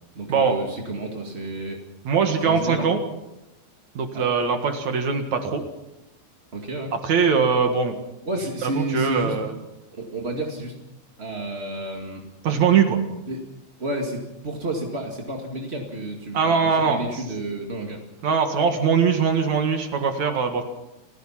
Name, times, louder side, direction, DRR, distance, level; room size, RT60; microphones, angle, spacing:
voice 1, 0.1-1.8 2.4-2.9 4.1-4.2 6.5-6.9 8.2-9.3 9.9-10.8 11.2-12.2 13.3-13.4 13.8-18.0, right 1 dB, 30° right, 1 dB, 1.3 m, -31 dB
voice 2, 2.0-3.0 3.9-5.6 7.0-7.9 8.6-9.5 12.4-13.0 16.3-17.2 18.2-20.6, right 6 dB, 55° right, 6 dB, 2.6 m, -21 dB
29.0 x 16.0 x 5.8 m, 0.94 s
omnidirectional pair, 4.6 m